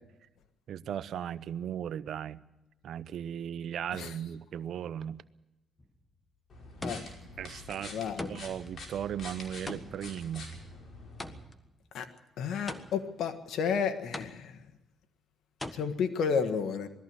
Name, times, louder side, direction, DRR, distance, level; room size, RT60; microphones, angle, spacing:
voice 1, 0.7-2.4 2.8-5.2 7.4-7.9 8.3-10.5, right 9 dB, 70° right, 16 dB, 0.7 m, -37 dB
sound 1, 5.8-6.2 6.8-7.4 8.2-8.7 9.7-11.7 12.7-13.3 14.1-14.7 15.6-15.7, left 1 dB, 15° left, 1.5 m, -41 dB
sound 2, 6.5-11.4, left 2 dB, 50° left, 5.5 m, -46 dB
voice 2, 7.9-8.3 11.9-12.1 12.4-14.5 15.7-16.9, left 6 dB, 75° left, 7 dB, 1.5 m, -31 dB
20.0 x 14.0 x 9.6 m, 0.97 s
cardioid pair, 90°, 0 cm